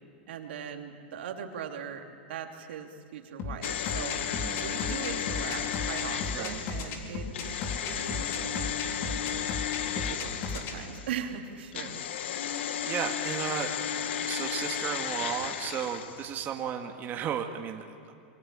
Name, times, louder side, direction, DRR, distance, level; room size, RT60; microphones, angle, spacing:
voice 1, 0.3-7.3 7.8-8.8 9.9-12.0, right 7 dB, 80° right, 3 dB, 3.1 m, -40 dB
sound 1, 3.4-10.7, left 4 dB, 45° left, 4.0 m, -35 dB
sound 2, 3.6-11.2 11.7-16.4 16.7-16.8, left 9 dB, 75° left, 1.7 m, -34 dB
voice 2, 4.3-4.6 6.3-6.6 12.8-13.7 14.3-18.1, right 9 dB, 35° right, 3 dB, 1.9 m, -34 dB
27.0 x 23.5 x 8.9 m, 2.4 s
hypercardioid pair, 125°, 6 cm